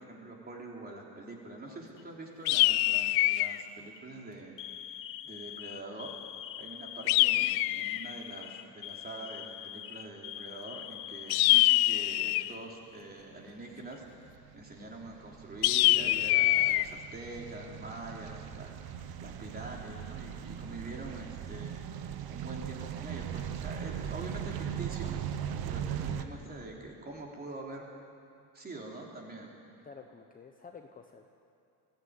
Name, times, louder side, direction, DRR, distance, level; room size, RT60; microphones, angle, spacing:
voice 1, 0.0-4.6 4.9-6.1 6.6-25.1 25.7-27.8 28.5-29.5, right 2 dB, 25° right, -1 dB, 3.5 m, -45 dB
Alarm, 1.7-2.2 3.1-3.4 3.8-4.0 4.6-12.1 12.4-12.5 13.5-14.2, left 11 dB, 50° left, 1.0 m, -45 dB
sound 1, 2.5-3.6 7.1-8.1 11.3-12.6 15.6-16.9, left 18 dB, 70° left, 0.5 m, -24 dB
sound 2, 13.4-26.2, right 9 dB, 65° right, 1.2 m, -39 dB
voice 2, 29.8-31.3, left 5 dB, 20° left, 3 dB, 1.0 m, -50 dB
22.5 x 16.0 x 9.7 m, 2.4 s
cardioid pair, 155°, 40 cm